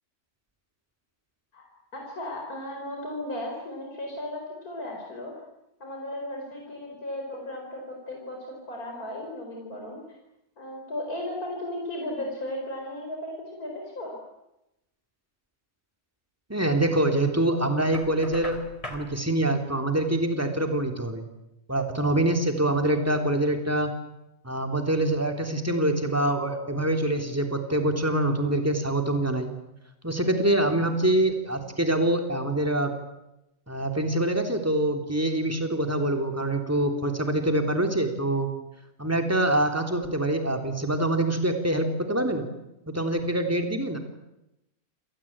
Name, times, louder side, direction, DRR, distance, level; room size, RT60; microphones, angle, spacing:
voice 1, 1.5-5.3 5.8-10.2 10.6-14.2, left 1 dB, 75° left, 0 dB, 5.2 m, -35 dB
voice 2, 16.5-18.6 18.9-21.2 21.7-23.9 24.4-29.5 30.0-32.9 33.7-38.5 39.0-42.5 42.9-44.0, right 1 dB, 10° right, 5 dB, 3.4 m, -25 dB
Knock, 17.9-19.1, left 1 dB, 20° left, 3.3 m, -39 dB
28.0 x 19.0 x 8.9 m, 0.89 s
omnidirectional pair, 1.6 m